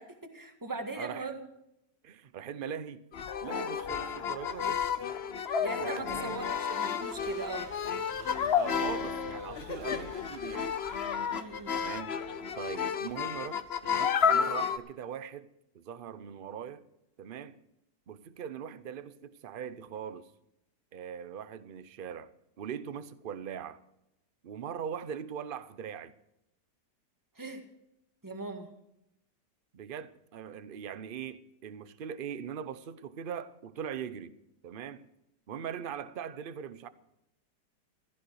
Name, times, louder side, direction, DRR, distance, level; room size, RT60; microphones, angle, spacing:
voice 1, 0.0-1.4 5.6-7.7 11.3-11.8 27.3-27.6 28.2-28.7, right 3 dB, 10° right, 1.7 m, -39 dB
voice 2, 1.0-1.3 2.0-3.0 3.4-4.9 5.8-6.4 8.5-10.7 11.7-12.1 12.5-15.5 15.7-16.8 17.2-17.6 18.1-20.3 20.9-22.3 22.6-23.8 24.4-26.1 29.7-34.4 34.6-35.1 35.5-36.9, right 8 dB, 50° right, 0.6 m, -41 dB
sound 1, 3.1-14.8, left 7 dB, 50° left, 0.8 m, -31 dB
sound 2, 6.2-11.6, right 5 dB, 85° right, 2.1 m, -52 dB
15.5 x 15.0 x 4.7 m
omnidirectional pair, 1.8 m